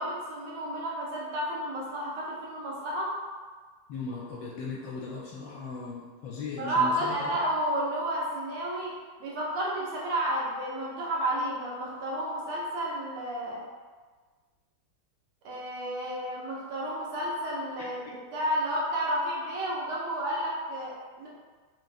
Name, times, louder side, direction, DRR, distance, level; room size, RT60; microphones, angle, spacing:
voice 1, 0.0-3.1 6.6-8.9 9.2-13.6 15.4-21.3, right 1 dB, 80° right, -5 dB, 1.7 m, -31 dB
voice 2, 3.9-7.4 17.8-17.9, left 4 dB, 75° left, -5 dB, 1.1 m, -38 dB
4.8 x 2.1 x 2.5 m, 1.4 s
omnidirectional pair, 2.4 m